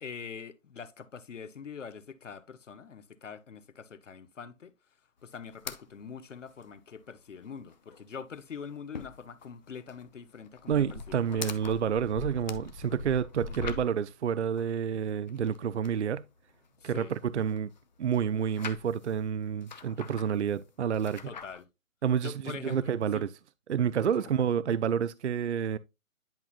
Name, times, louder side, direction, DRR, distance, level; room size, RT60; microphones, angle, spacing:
voice 1, 0.0-4.7 5.2-11.6 13.5-13.9 16.8-17.1 21.2-21.7 22.2-23.3 24.2-24.3, left 6 dB, 65° left, 0.9 m, -44 dB
sound 1, 5.5-5.8 6.1-6.2 6.5-6.6 7.0-7.1 7.4-8.0 8.3-14.1 14.6-16.0 16.5-17.8 18.1-19.1 19.6-20.6 20.9-21.6, left 5 dB, 35° left, 0.7 m, -43 dB
voice 2, 10.7-16.2 16.8-17.7 18.0-21.3 22.0-23.3 23.7-25.8, right 8 dB, 55° right, 0.5 m, -29 dB
10.5 x 5.6 x 2.4 m
figure-of-eight pair, 150°, 40 cm